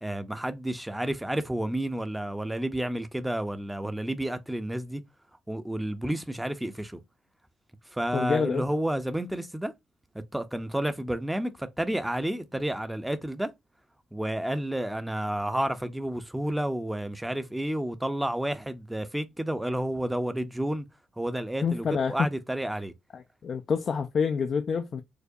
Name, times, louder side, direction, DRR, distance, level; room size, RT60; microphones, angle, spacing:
voice 1, 0.0-5.0 5.5-7.0 7.9-9.7 10.3-13.5 14.1-20.9 21.2-22.9, right 1 dB, 5° right, 0.6 m, -30 dB
voice 2, 8.1-8.6 21.6-22.2 23.1-25.0, left 6 dB, 50° left, 0.4 m, -27 dB
4.6 x 2.1 x 2.7 m
cardioid pair, 85°, 0 cm